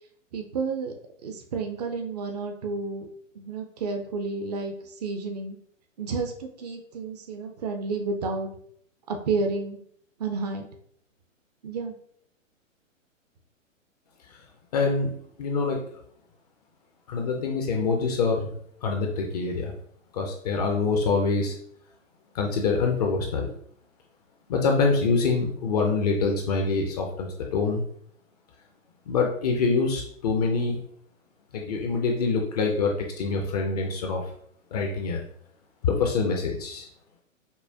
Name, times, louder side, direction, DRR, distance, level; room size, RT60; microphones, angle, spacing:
voice 1, 0.3-0.9 1.2-3.1 3.4-5.6 6.0-8.5 9.1-9.8 10.2-10.7 11.6-11.9, right 4 dB, 35° right, 4 dB, 0.4 m, -31 dB
voice 2, 14.7-15.1 15.4-15.8 17.1-18.5 18.8-19.7 20.1-21.6 22.3-23.5 24.5-27.8 29.1-30.8 31.5-34.2 34.7-35.2 35.8-36.9, left 4 dB, 30° left, 1 dB, 0.5 m, -25 dB
5.4 x 2.1 x 2.7 m, 0.64 s
figure-of-eight pair, 120°, 40 cm